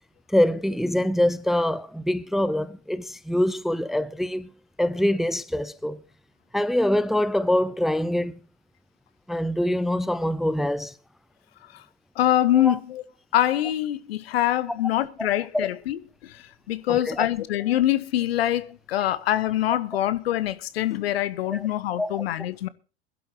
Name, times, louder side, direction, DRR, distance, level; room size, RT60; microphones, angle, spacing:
voice 1, 0.3-4.5 4.8-6.0 6.5-8.4 9.3-10.9 12.5-12.8 15.5-15.7 16.9-17.3 21.5-21.7 22.0-22.2, left 1 dB, ahead, 0.7 m, -24 dB
voice 2, 12.1-13.0 13.3-22.7, left 13 dB, 70° left, 1.1 m, -24 dB
22.0 x 11.5 x 2.9 m
figure-of-eight pair, 80°, 32 cm